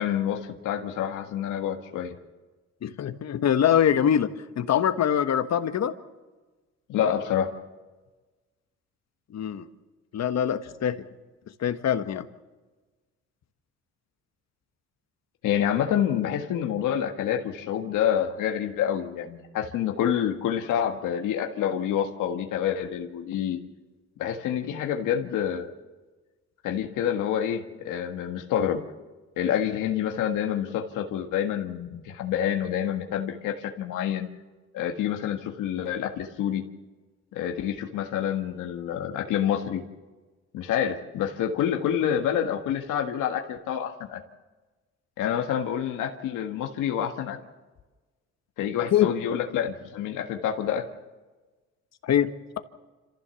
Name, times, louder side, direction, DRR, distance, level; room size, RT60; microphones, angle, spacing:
voice 1, 0.0-2.1 6.9-7.5 15.4-23.6 24.2-25.7 26.6-28.8 29.4-34.3 34.7-36.6 37.3-39.8 40.5-44.2 45.2-47.4 48.6-50.8, left 9 dB, 90° left, 3 dB, 1.6 m, -27 dB
voice 2, 2.8-5.9 9.3-9.7 10.1-11.0 11.6-12.3 48.9-49.1 52.0-52.6, left 9 dB, 60° left, 10 dB, 1.4 m, -24 dB
27.0 x 15.0 x 7.1 m, 1.3 s
cardioid pair, 90°, 30 cm